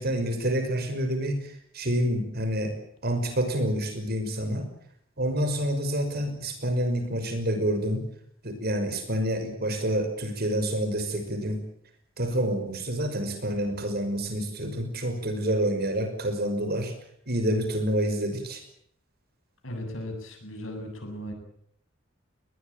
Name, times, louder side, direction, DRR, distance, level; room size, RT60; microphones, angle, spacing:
voice 1, 0.0-1.4 1.7-2.8 3.0-4.7 5.2-8.0 8.4-11.6 12.2-16.9 17.3-18.6, right 1 dB, 55° right, 7 dB, 5.8 m, -28 dB
voice 2, 19.6-21.3, left 1 dB, 85° left, 5 dB, 7.9 m, -37 dB
21.5 x 20.0 x 9.1 m, 0.69 s
head